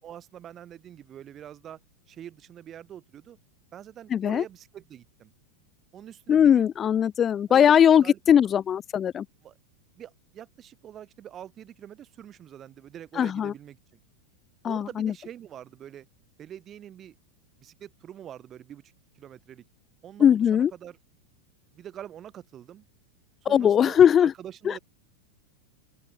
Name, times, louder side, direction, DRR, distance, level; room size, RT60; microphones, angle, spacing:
voice 1, 0.0-1.8 2.1-3.4 3.7-5.3 5.9-6.7 7.5-7.7 8.0-8.4 9.4-9.6 10.0-14.0 14.6-16.1 16.4-17.2 17.6-19.6 20.0-21.0 21.7-22.9 23.4-24.8, right 10 dB, 30° right, 5.2 m, -45 dB
voice 2, 4.1-4.4 6.3-9.2 13.2-13.5 14.6-15.1 20.2-20.7 23.5-24.3 24.7-24.8, left 9 dB, 25° left, 0.4 m, -20 dB
open air
figure-of-eight pair, 90°, 0 cm